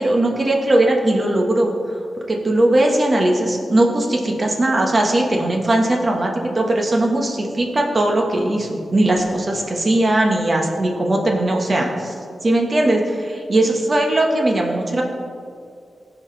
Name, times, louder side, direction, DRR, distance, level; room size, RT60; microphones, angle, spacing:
voice 1, 0.0-1.7 2.3-12.1 12.4-15.0, right 1 dB, 45° right, 1 dB, 1.5 m, -19 dB
14.5 x 4.9 x 3.4 m, 2.3 s
cardioid pair, 45°, 0 cm